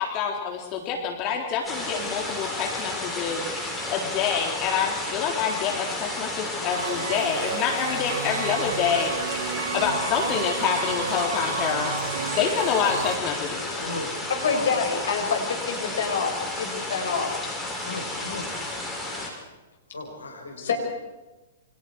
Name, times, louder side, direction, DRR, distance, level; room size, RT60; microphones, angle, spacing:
voice 1, 0.0-9.1 9.7-11.9 12.4-13.8, left 7 dB, 35° left, 1 dB, 3.6 m, -27 dB
sound 1, 1.6-19.3, left 2 dB, ahead, 6.6 m, -32 dB
sound 2, 6.7-13.2, right 7 dB, 65° right, 1.2 m, -32 dB
voice 2, 13.7-14.7 17.8-18.5 19.9-20.8, left 3 dB, 80° left, 4 dB, 4.4 m, -35 dB
voice 3, 14.3-17.3 20.6-20.8, left 6 dB, 60° left, 3 dB, 6.2 m, -27 dB
29.0 x 25.0 x 4.8 m, 1.1 s
figure-of-eight pair, 110°, 0 cm